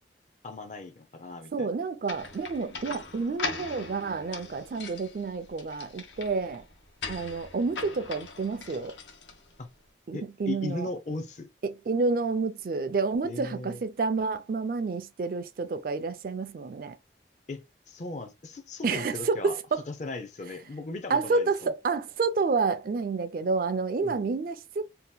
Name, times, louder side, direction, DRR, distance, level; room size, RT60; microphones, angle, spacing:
voice 1, 0.4-1.7 2.7-2.8 9.6-9.7 10.1-11.5 13.2-13.8 17.5-19.6 19.9-21.7 24.0-24.3, left 3 dB, 40° left, 0.5 m, -38 dB
voice 2, 1.5-6.6 7.1-8.9 10.1-10.9 11.6-17.0 18.8-19.8 21.1-24.8, right 4 dB, 50° right, 0.3 m, -29 dB
sound 1, 2.0-9.7, left 4 dB, 85° left, 0.7 m, -40 dB
2.8 x 2.2 x 3.4 m
head